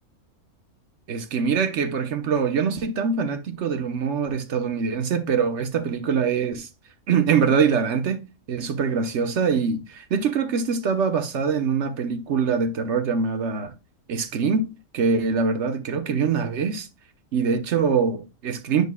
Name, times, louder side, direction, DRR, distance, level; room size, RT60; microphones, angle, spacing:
voice 1, 1.1-6.7 7.1-13.7 14.1-16.9 17.3-18.9, right 6 dB, 55° right, 1.1 m, -24 dB
9.3 x 5.2 x 2.2 m
omnidirectional pair, 1.5 m